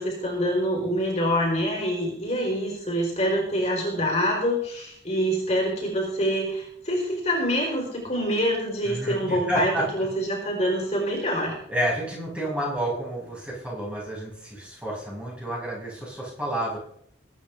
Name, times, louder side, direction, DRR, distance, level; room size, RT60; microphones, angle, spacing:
voice 1, 0.0-11.5, equal, 35° left, -1 dB, 4.1 m, -26 dB
voice 2, 8.8-9.8 11.7-16.8, right 1 dB, 5° right, -6 dB, 5.7 m, -30 dB
21.5 x 9.5 x 3.5 m, 0.69 s
head